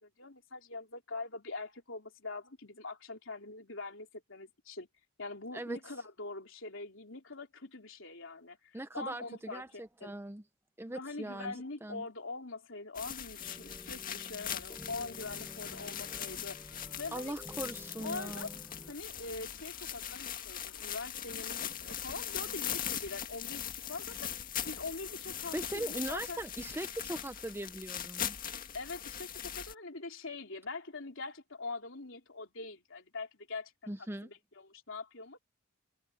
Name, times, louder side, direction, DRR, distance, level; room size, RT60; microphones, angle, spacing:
voice 1, 0.0-4.9 5.2-10.2 10.9-17.4 18.0-18.5 18.9-26.4 28.7-33.9 34.2-35.4, left 3 dB, 60° left, 3.8 m, -43 dB
voice 2, 8.7-10.4 10.8-12.1 17.1-18.6 25.5-28.4 33.9-34.3, right 1 dB, 10° right, 0.6 m, -40 dB
sound 1, 12.9-29.7, left 9 dB, 40° left, 2.0 m, -40 dB
sound 2, 13.4-18.9, equal, 5° left, 3.7 m, -52 dB
sound 3, 15.3-21.0, left 3 dB, 80° left, 3.1 m, -61 dB
open air
head